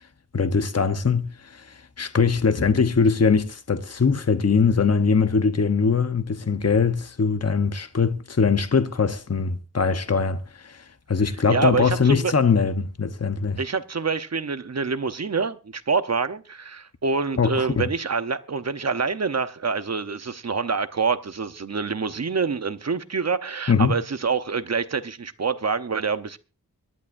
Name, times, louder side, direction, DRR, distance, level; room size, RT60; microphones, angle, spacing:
voice 1, 0.3-13.6 17.4-17.9 23.7-24.0, left 5 dB, 45° left, 1.0 m, -22 dB
voice 2, 11.5-12.3 13.6-26.4, right 5 dB, 45° right, 0.9 m, -26 dB
24.0 x 11.0 x 2.6 m
wide cardioid pair, 85°, 36 cm